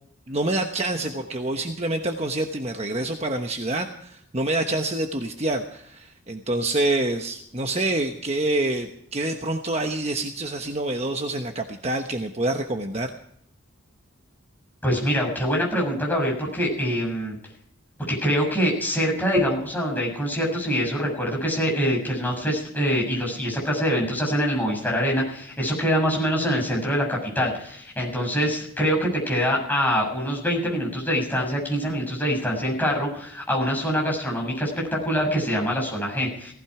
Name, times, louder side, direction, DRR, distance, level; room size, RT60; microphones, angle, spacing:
voice 1, 0.3-13.1, right 2 dB, 30° right, 4 dB, 1.1 m, -27 dB
voice 2, 14.8-17.3 18.1-36.5, equal, 10° left, -2 dB, 7.0 m, -24 dB
18.5 x 15.5 x 4.9 m, 0.68 s
head